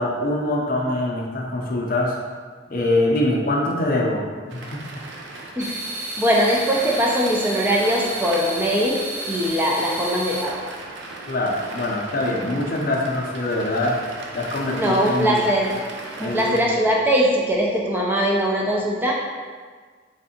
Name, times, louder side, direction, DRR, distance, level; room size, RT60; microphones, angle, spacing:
voice 1, 0.0-2.1 2.7-4.8 11.3-14.0 14.3-15.4 16.2-16.7, left 1 dB, 50° left, 0 dB, 0.5 m, -24 dB
sound 1, 4.5-16.6, right 2 dB, 80° right, 0.5 m, -37 dB
voice 2, 5.6-9.0 9.3-10.6 14.7-15.7 16.2-19.1, equal, 10° right, -3 dB, 0.3 m, -21 dB
sound 2, 5.6-10.4, right 2 dB, 40° right, 1.3 m, -31 dB
3.6 x 3.2 x 2.8 m, 1.6 s
head